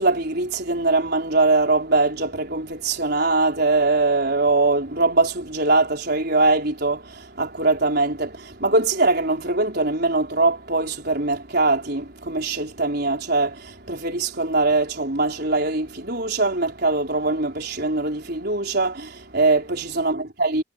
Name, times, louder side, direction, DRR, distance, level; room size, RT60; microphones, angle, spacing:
voice 1, 0.0-20.6, right 3 dB, 50° right, 4.8 m, -22 dB
head